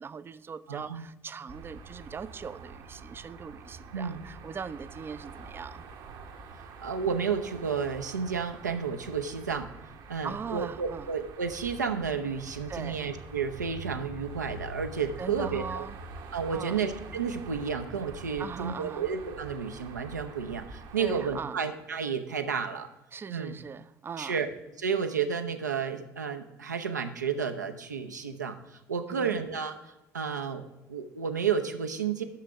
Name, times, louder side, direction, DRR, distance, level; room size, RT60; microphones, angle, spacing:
voice 1, 0.0-5.8 10.2-11.1 12.7-13.0 15.2-16.0 16.5-16.8 18.4-19.1 21.0-21.6 23.1-24.4 29.1-29.4, right 6 dB, 25° right, 15 dB, 0.4 m, -40 dB
voice 2, 0.7-1.0 3.9-4.3 6.8-9.7 10.1-15.8 16.3-22.9 23.3-23.5 24.2-24.5 24.8-32.2, right 6 dB, 80° right, 6 dB, 0.6 m, -31 dB
sound 1, 1.5-21.4, right 3 dB, 55° right, 0.9 m, -46 dB
6.4 x 5.7 x 6.9 m, 1.0 s
figure-of-eight pair, 55°, 9 cm